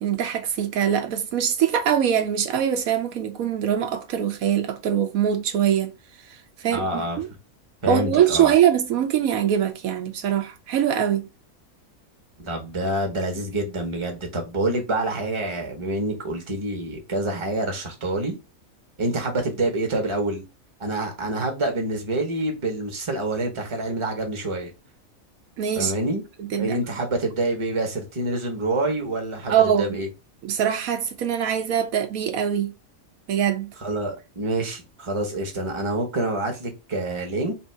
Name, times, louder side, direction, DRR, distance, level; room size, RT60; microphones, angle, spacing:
voice 1, 0.0-5.9 6.6-7.3 7.9-11.3 25.6-25.9 26.4-26.8 29.5-30.0 30.4-32.7 33.3-33.7, right 9 dB, 80° right, 1.1 m, -23 dB
voice 2, 6.7-7.2 7.8-8.5 12.4-18.4 19.0-20.4 20.8-24.7 25.8-26.2 26.6-30.1 33.8-37.5, right 2 dB, 25° right, 1.0 m, -27 dB
3.5 x 2.7 x 4.5 m
omnidirectional pair, 1.5 m